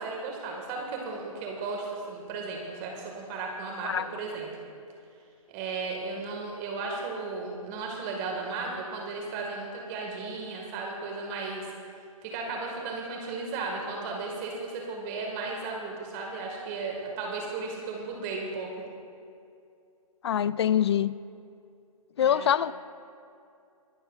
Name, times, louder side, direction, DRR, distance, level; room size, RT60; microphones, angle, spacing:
voice 1, 0.0-4.5 5.5-11.7 12.2-18.7 22.2-22.5, right 3 dB, 25° right, 0 dB, 1.9 m, -35 dB
voice 2, 20.2-21.1 22.2-22.7, left 9 dB, 45° left, 18 dB, 0.4 m, -24 dB
24.0 x 12.0 x 2.5 m, 2.5 s
figure-of-eight pair, 130°, 19 cm